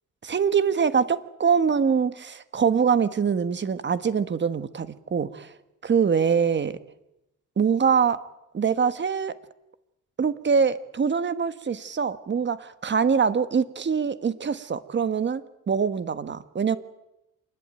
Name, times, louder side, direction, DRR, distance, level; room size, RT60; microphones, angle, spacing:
voice 1, 0.2-5.5 5.8-6.8 7.6-8.2 8.5-9.3 10.2-16.8, right 6 dB, 35° right, 13 dB, 1.4 m, -24 dB
26.5 x 20.5 x 9.0 m, 0.90 s
cardioid pair, 140°, 32 cm